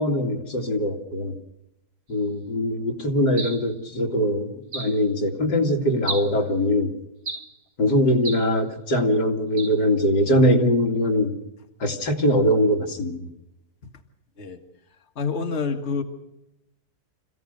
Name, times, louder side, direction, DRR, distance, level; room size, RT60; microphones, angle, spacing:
voice 1, 0.0-1.4 2.1-6.9 7.8-11.4 11.8-13.3, equal, 85° left, 1 dB, 2.9 m, -22 dB
sound 1, 3.4-3.7 4.7-5.0 6.1-6.4 7.2-7.6 8.2-8.5 9.6-9.8, right 4 dB, 60° right, 2.6 m, -33 dB
voice 2, 15.2-16.0, left 5 dB, 45° left, 3 dB, 1.9 m, -27 dB
26.5 x 16.0 x 6.5 m, 0.88 s
omnidirectional pair, 1.8 m